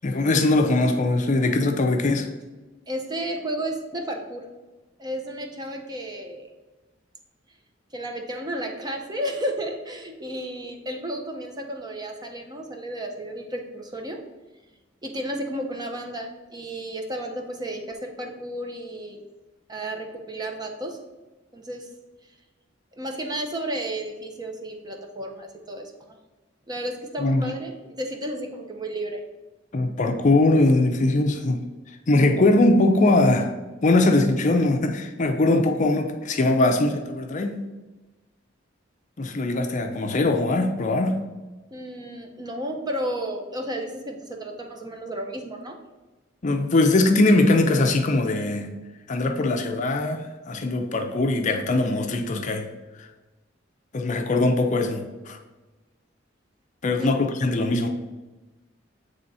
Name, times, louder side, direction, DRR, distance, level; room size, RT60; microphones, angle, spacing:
voice 1, 0.0-2.3 27.2-27.5 29.7-31.6 32.1-33.5 33.8-37.6 39.2-41.2 46.4-48.7 49.1-52.7 53.0-53.1 53.9-55.4 56.8-57.9, left 2 dB, 40° left, 5 dB, 0.5 m, -21 dB
voice 2, 2.9-4.4 5.0-6.5 7.9-14.2 15.0-19.2 19.7-21.0 21.5-21.9 23.0-26.2 26.7-29.2 41.7-45.8 57.0-57.1, right 1 dB, 20° right, 3 dB, 0.7 m, -32 dB
8.0 x 3.4 x 4.1 m, 1.2 s
head